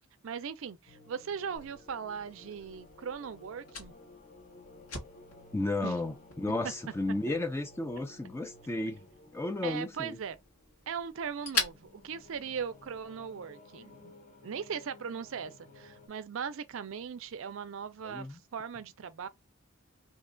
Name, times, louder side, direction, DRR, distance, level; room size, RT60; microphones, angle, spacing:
voice 1, 0.2-3.9 5.8-6.0 9.6-10.4 10.9-14.1 14.4-19.3, right 7 dB, 60° right, 0.4 m, -39 dB
sound 1, 0.9-16.1, left 2 dB, 35° left, 0.8 m, -56 dB
Fire, 1.5-13.1, left 4 dB, 80° left, 1.4 m, -43 dB
voice 2, 5.5-9.1 9.3-10.2 18.0-18.4, left 2 dB, 10° left, 0.3 m, -33 dB
2.7 x 2.3 x 3.7 m
head